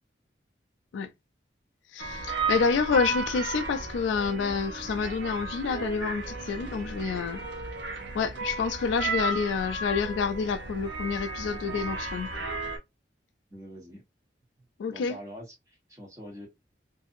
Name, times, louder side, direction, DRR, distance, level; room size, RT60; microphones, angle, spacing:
voice 1, 1.9-7.4 8.1-12.3 14.8-15.2, left 5 dB, 85° left, 0.3 m, -28 dB
sound 1, 2.0-12.8, right 3 dB, 75° right, 0.9 m, -34 dB
voice 2, 13.5-14.0 14.9-16.5, equal, 15° right, 1.1 m, -44 dB
2.6 x 2.5 x 2.4 m
head